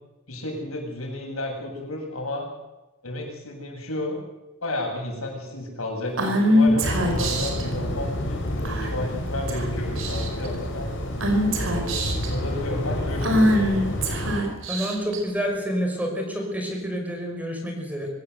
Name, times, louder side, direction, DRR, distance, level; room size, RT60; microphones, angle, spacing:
voice 1, 0.3-2.5 3.0-4.2 4.6-10.9 11.5-13.7, left 1 dB, 85° left, 1 dB, 7.4 m, -32 dB
Female speech woman speaking / Whispering, 6.2-7.6 8.6-9.1 9.5-9.6 9.9-10.5 11.2-12.3 13.2-15.2, equal, 65° right, 5.0 m, -23 dB
sound 1, 6.8-14.4, left 1 dB, 60° left, 5.0 m, -29 dB
voice 2, 14.7-18.1, equal, 10° right, 2 dB, 5.7 m, -28 dB
24.5 x 17.0 x 8.1 m, 1.0 s
head